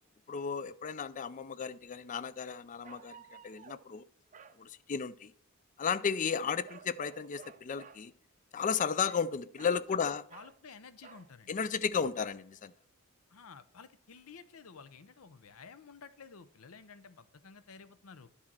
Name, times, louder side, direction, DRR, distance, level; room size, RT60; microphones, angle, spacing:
voice 1, 0.3-3.2 3.4-4.0 4.6-5.3 5.8-8.1 8.5-10.2 11.5-12.7, left 6 dB, 35° left, 0.4 m, -34 dB
sound 1, 2.8-3.9 4.3-4.6 6.7-8.0 9.0-9.8 10.3-10.6 11.0-11.3, right 6 dB, 35° right, 0.5 m, -53 dB
voice 2, 9.9-11.5 13.3-18.3, left 5 dB, 75° left, 0.6 m, -52 dB
9.9 x 4.3 x 6.1 m
head